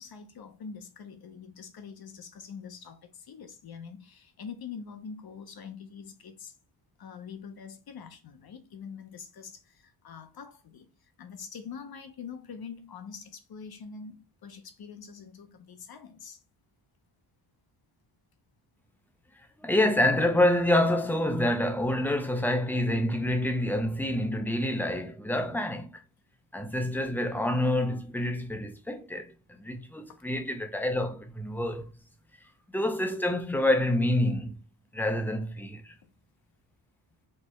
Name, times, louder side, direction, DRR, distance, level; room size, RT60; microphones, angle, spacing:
voice 1, 0.0-6.5 7.0-16.4 30.1-30.2 36.0-36.1, left 6 dB, 50° left, 0.7 m, -44 dB
voice 2, 19.4-26.0 26.5-31.9 32.7-34.6 34.9-35.9, left 1 dB, 5° left, 0.4 m, -27 dB
4.4 x 3.2 x 3.1 m
wide cardioid pair, 175°, 47 cm